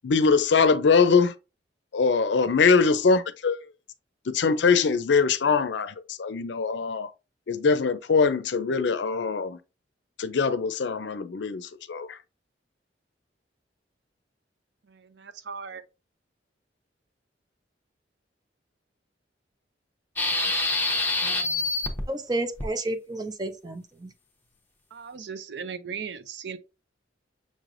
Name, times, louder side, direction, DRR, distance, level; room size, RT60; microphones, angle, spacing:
voice 1, 0.0-1.3 1.9-3.7 4.3-7.1 7.5-9.6 10.2-12.2, left 5 dB, 75° left, 0.5 m, -22 dB
voice 2, 14.9-15.8 24.9-26.6, right 6 dB, 65° right, 0.5 m, -37 dB
sound 1, 20.2-22.0 22.6-22.7, left 2 dB, 10° left, 0.9 m, -26 dB
voice 3, 21.2-21.6 22.1-24.1, right 2 dB, 20° right, 0.5 m, -32 dB
6.4 x 3.2 x 2.5 m
head